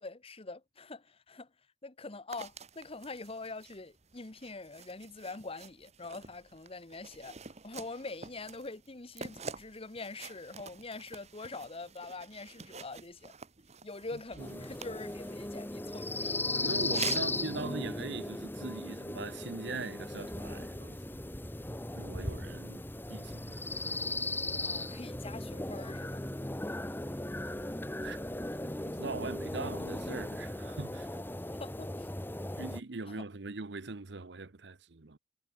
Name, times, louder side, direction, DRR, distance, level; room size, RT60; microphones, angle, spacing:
voice 1, 0.0-1.5 1.8-13.3 13.8-16.5 16.9-17.2 24.6-26.2 31.5-32.1 33.0-33.2, left 3 dB, 35° left, 1.2 m, -44 dB
sound 1, 2.3-15.8 16.8-17.4, right 6 dB, 40° right, 1.5 m, -47 dB
sound 2, 14.4-32.8, left 2 dB, 10° left, 1.4 m, -37 dB
voice 2, 16.2-21.2 21.9-22.8 23.1-23.9 28.0-28.2 28.6-31.1 32.6-35.2, right 3 dB, 70° right, 1.0 m, -41 dB
head